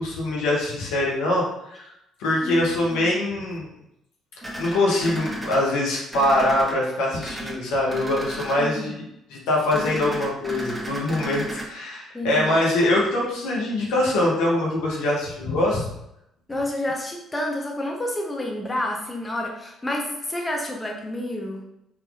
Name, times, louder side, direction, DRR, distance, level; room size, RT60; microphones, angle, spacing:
voice 1, 0.0-1.9 2.2-3.7 4.6-9.0 9.3-15.9, left 1 dB, 70° left, -3 dB, 0.9 m, -23 dB
voice 2, 2.4-3.1 8.6-9.0 12.1-12.5 16.5-21.6, left 1 dB, 20° left, 0 dB, 0.8 m, -29 dB
sound 1, 4.4-5.6 6.1-6.7 7.2-7.5 7.9-8.6 9.7-11.7, right 1 dB, 10° right, 1.2 m, -34 dB
3.9 x 2.9 x 2.4 m, 0.82 s
hypercardioid pair, 50°, 0 cm